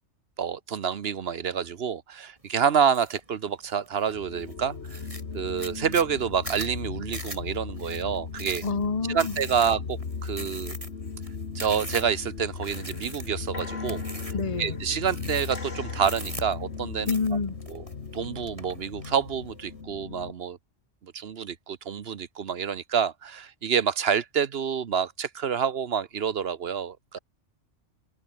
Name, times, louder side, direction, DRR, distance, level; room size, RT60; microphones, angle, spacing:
voice 1, 0.4-5.0 5.3-8.6 9.1-10.8 11.5-14.3 14.6-17.1 17.7-17.8 18.1-20.6 21.0-27.2, right 7 dB, 55° right, 1.1 m, -28 dB
sound 1, 2.9-3.2 3.6-4.1 4.5-4.6 4.8-12.2 12.6-13.5 13.9-14.5 15.1-15.7 16.0-16.8 17.1-18.2 18.6-19.1, right 1 dB, 25° right, 6.8 m, -40 dB
sound 2, 4.1-20.3, left 5 dB, 60° left, 2.0 m, -37 dB
voice 2, 8.6-9.3 14.3-14.8 17.1-17.6, left 4 dB, 30° left, 1.3 m, -28 dB
sound 3, 11.0-11.4 11.6-12.2 12.6-15.0 15.5-16.6 19.6-19.9, left 3 dB, 75° left, 4.1 m, -45 dB
omnidirectional pair, 1.3 m